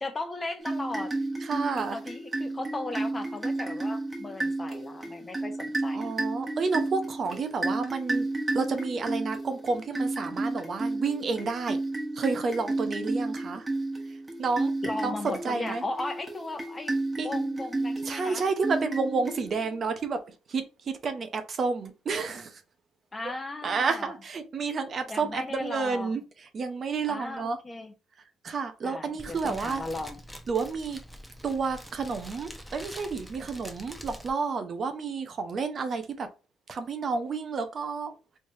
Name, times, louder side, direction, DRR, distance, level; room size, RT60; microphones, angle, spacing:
voice 1, 0.0-1.1 1.9-6.1 14.8-17.0 17.2-18.4 23.1-24.1 25.1-26.2 27.1-27.9 28.8-30.2, left 2 dB, 25° left, 0.8 m, -36 dB
sound 1, 0.6-19.8, right 2 dB, 20° right, 1.0 m, -32 dB
voice 2, 1.4-2.0 5.9-8.3 8.5-11.8 12.1-13.7 14.1-14.7 15.0-15.8 17.2-17.3 18.0-22.6 23.6-26.2 26.5-27.6 28.4-29.8 30.5-31.0 31.4-36.3 36.7-38.1, right 4 dB, 45° right, 0.6 m, -30 dB
Fire, 29.2-34.3, equal, ahead, 0.7 m, -45 dB
3.2 x 3.2 x 2.7 m
cardioid pair, 90°, 0 cm